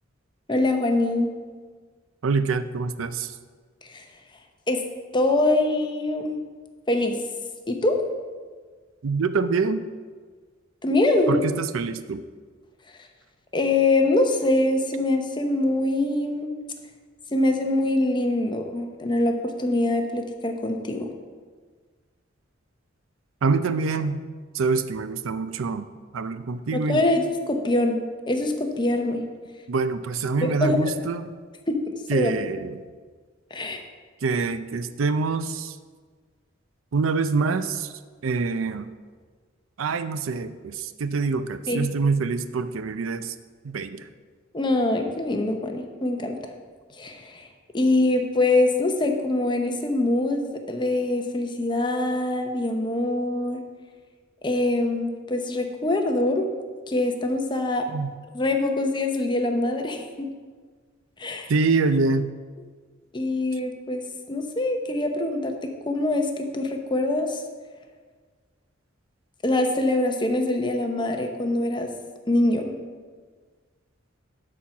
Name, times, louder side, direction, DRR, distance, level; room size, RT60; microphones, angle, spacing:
voice 1, 0.5-1.3 3.9-4.0 4.7-4.8 5.1-6.4 6.9-7.2 7.7-8.0 10.8-11.4 13.5-16.5 17.3-21.1 26.7-28.0 28.3-29.2 30.4-31.1 31.7-32.3 33.5-33.8 41.7-41.9 44.5-46.4 46.9-47.4 47.7-53.6 54.4-56.5 56.9-57.9 58.3-60.3 61.2-61.5 63.1-65.6 65.9-67.4 69.4-71.9 72.3-72.7, left 2 dB, 25° left, 4 dB, 0.8 m, -24 dB
voice 2, 2.2-3.3 9.0-9.8 11.3-12.2 23.4-24.2 24.5-25.9 26.1-27.0 29.7-31.3 32.1-32.8 34.2-35.8 36.9-37.9 38.2-38.9 39.8-43.3 43.6-44.1 57.9-58.1 61.5-62.3, right 4 dB, 85° right, 12 dB, 0.5 m, -25 dB
11.5 x 4.5 x 5.8 m, 1.5 s
head